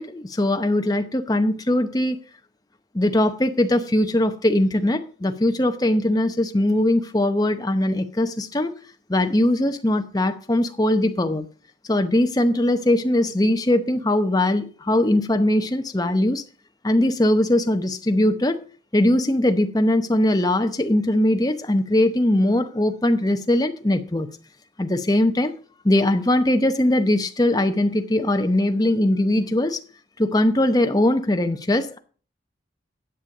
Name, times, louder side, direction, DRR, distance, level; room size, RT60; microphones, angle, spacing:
voice 1, 0.0-2.2 2.9-8.7 9.1-11.5 11.9-16.4 16.8-18.6 18.9-24.3 24.8-25.5 25.8-29.8 30.2-32.0, left 1 dB, 20° left, 0.8 m, -20 dB
10.5 x 6.9 x 4.9 m
head